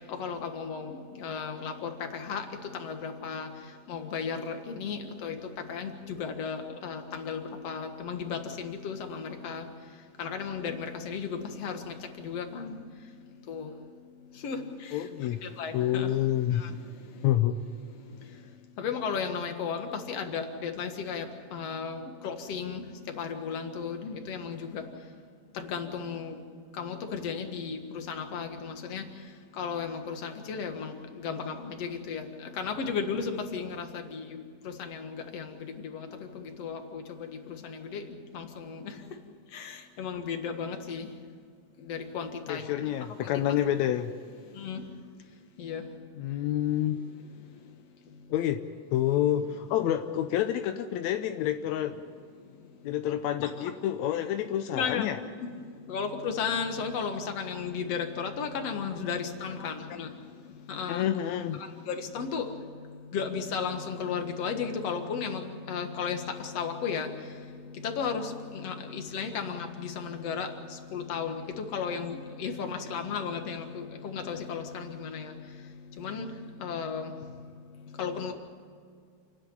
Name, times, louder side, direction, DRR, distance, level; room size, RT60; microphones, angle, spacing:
voice 1, 0.2-0.9 1.2-1.7 2.1-2.4 2.8-3.5 3.9-5.3 5.7-5.9 6.2-7.4 7.6-9.6 10.2-11.3 11.6-11.8 12.2-12.7 13.5-13.7 14.4-14.6 15.6-16.1 18.8-21.2 21.5-22.8 23.2-24.8 25.7-26.3 26.8-27.8 28.1-29.0 29.6-30.9 31.2-32.2 32.6-33.9 34.1-34.4 34.8-35.0 35.3-35.5 35.9-36.1 36.6-37.0 37.9-38.0 38.3-38.5 39.5-39.7 40.0-41.1 41.9-42.7 44.6-44.8 45.6-45.8 54.7-55.1 55.9-60.1 60.7-61.1 61.9-62.5 63.1-65.4 65.7-66.2 66.6-67.1 67.8-68.2 68.5-70.5 70.9-71.3 71.7-75.3 76.0-76.3 76.6-77.1 78.0-78.3, left 6 dB, 55° left, 5 dB, 2.5 m, -34 dB
voice 2, 14.9-15.4 15.7-16.6 17.2-17.6 42.5-44.1 46.2-47.0 48.3-48.6 48.9-52.0 52.8-55.2 59.6-59.7 60.9-61.6, left 11 dB, 75° left, 7 dB, 1.7 m, -28 dB
29.0 x 11.0 x 9.9 m, 2.2 s
omnidirectional pair, 3.8 m